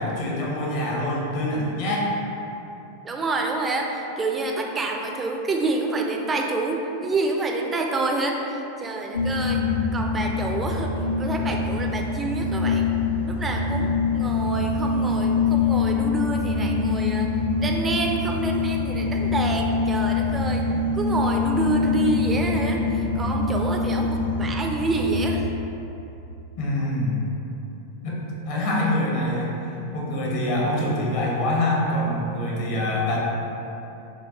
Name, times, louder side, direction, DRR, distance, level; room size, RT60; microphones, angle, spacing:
voice 1, 0.0-2.1 26.6-27.4 28.0-33.2, left 1 dB, 50° left, -4 dB, 0.8 m, -25 dB
voice 2, 3.0-9.6 9.9-12.9 13.3-20.6 20.9-25.5, right 3 dB, 15° right, 1 dB, 0.3 m, -28 dB
sound 1, 9.1-25.4, left 4 dB, 70° left, 0.3 m, -24 dB
4.4 x 2.2 x 3.0 m, 2.9 s
figure-of-eight pair, 90°, 0 cm